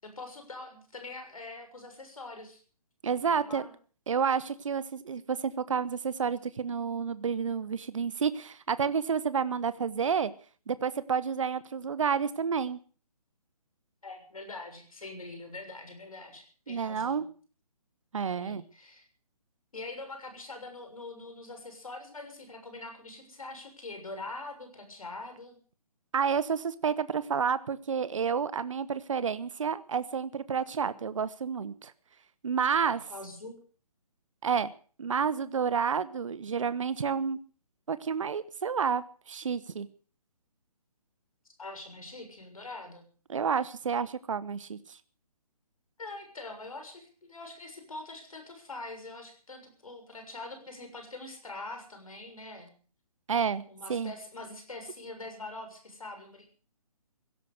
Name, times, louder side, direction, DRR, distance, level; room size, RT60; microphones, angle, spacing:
voice 1, 0.0-2.6 3.2-3.7 14.0-17.3 18.4-19.0 19.7-25.6 32.8-33.6 41.6-43.1 46.0-52.7 53.7-56.5, left 2 dB, 65° left, 5 dB, 6.8 m, -44 dB
voice 2, 3.0-3.7 4.1-10.3 10.7-12.8 16.7-17.2 18.1-18.6 26.1-31.9 32.4-33.0 34.4-34.7 35.0-37.4 37.9-39.9 43.3-45.0 53.3-53.6 53.9-54.1, right 6 dB, 55° right, 16 dB, 1.0 m, -30 dB
16.5 x 12.5 x 6.6 m, 0.42 s
figure-of-eight pair, 140°, 19 cm